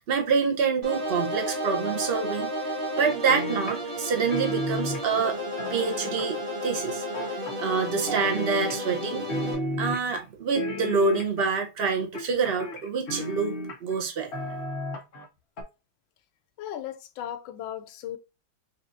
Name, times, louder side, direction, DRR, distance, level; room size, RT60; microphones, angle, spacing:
voice 1, 0.0-2.5 2.9-5.4 5.7-7.0 7.6-9.3 9.8-13.6 13.8-14.3, right 5 dB, 65° right, 0.6 m, -26 dB
sound 1, 0.8-9.5, equal, 30° right, 1.2 m, -33 dB
sound 2, 3.3-4.1 4.3-6.5 7.1-7.8 8.1-9.0 9.3-10.2 10.5-11.5 12.1-14.0 14.3-15.3 15.6-15.7, equal, 45° left, 0.9 m, -33 dB
voice 2, 16.6-18.2, left 11 dB, 85° left, 1.3 m, -36 dB
5.3 x 2.5 x 2.5 m
omnidirectional pair, 2.1 m